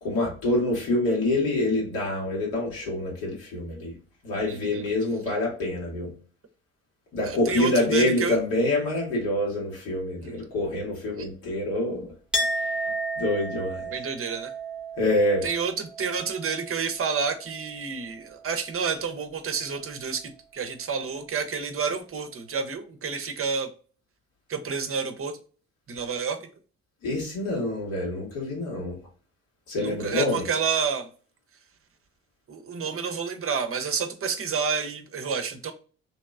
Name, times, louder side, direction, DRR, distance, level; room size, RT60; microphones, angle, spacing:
voice 1, 0.0-3.9 4.2-6.1 7.1-12.1 12.6-12.7 13.2-13.9 15.0-15.5 27.0-29.0 29.7-30.5, left 1 dB, 75° left, 1.5 m, -26 dB
voice 2, 4.5-4.9 7.2-8.4 10.2-10.4 13.9-14.5 15.4-23.7 24.5-25.4 25.9-26.4 29.8-31.1 32.5-35.7, right 6 dB, 40° right, 0.7 m, -29 dB
Chink clink, 12.3-17.8 18.1-19.0, right 1 dB, 5° right, 0.9 m, -33 dB
3.0 x 2.8 x 2.4 m
hypercardioid pair, 45°, 35 cm